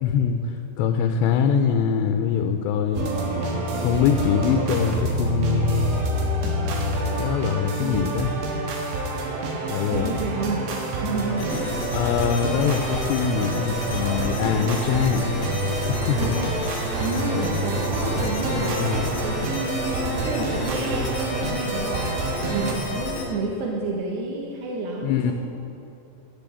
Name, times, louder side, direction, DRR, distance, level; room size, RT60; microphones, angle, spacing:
voice 1, 0.0-3.1 3.8-6.0 7.2-8.3 9.7-10.2 11.9-15.3 15.9-16.4 18.1-19.1 25.0-25.3, left 7 dB, 85° left, 6 dB, 2.8 m, -23 dB
sound 1, 2.9-22.7, right 2 dB, 90° right, 3.8 m, -27 dB
voice 2, 9.9-10.7 11.0-11.7 16.2-16.5 16.8-18.8 19.2-25.3, right 3 dB, 75° right, -2 dB, 3.3 m, -30 dB
sound 2, 11.4-23.2, left 1 dB, 45° left, 2.2 m, -31 dB
13.5 x 7.0 x 8.3 m, 2.7 s
omnidirectional pair, 5.0 m